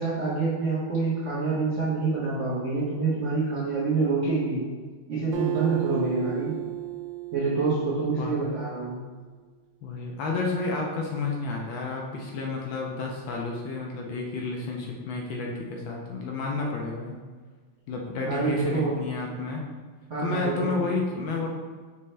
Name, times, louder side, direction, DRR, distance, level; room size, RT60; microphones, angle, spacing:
voice 1, 0.0-4.6 5.1-6.5 7.3-9.0 18.2-18.9 20.1-20.8, right 4 dB, 50° right, -9 dB, 0.9 m, -27 dB
Acoustic guitar, 5.3-8.9, right 17 dB, 85° right, 0.8 m, -34 dB
voice 2, 9.8-17.2 17.9-19.6 20.2-21.5, left 3 dB, 75° left, 0 dB, 1.2 m, -31 dB
5.3 x 2.7 x 3.2 m, 1.4 s
omnidirectional pair, 2.3 m